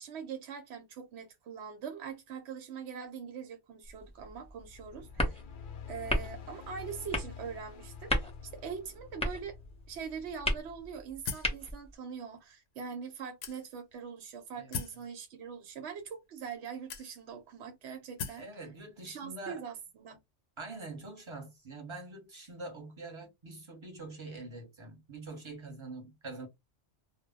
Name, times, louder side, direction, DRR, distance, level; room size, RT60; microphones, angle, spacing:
voice 1, 0.0-5.4 5.9-8.3 8.5-9.6 9.9-18.5 19.1-20.2, right 6 dB, 70° right, 0.9 m, -42 dB
sound 1, 3.8-12.0, left 1 dB, 5° left, 0.6 m, -37 dB
sound 2, 4.5-11.1, left 8 dB, 60° left, 0.6 m, -49 dB
voice 2, 5.0-5.4 14.5-14.7 18.4-19.6 20.6-26.5, right 3 dB, 25° right, 0.9 m, -45 dB
sound 3, 11.3-11.6 12.4-12.5 13.4-13.9 14.7-15.0 16.0-16.1 16.9-17.4 18.2-18.5, left 6 dB, 80° left, 0.9 m, -39 dB
2.2 x 2.1 x 3.4 m
omnidirectional pair, 1.2 m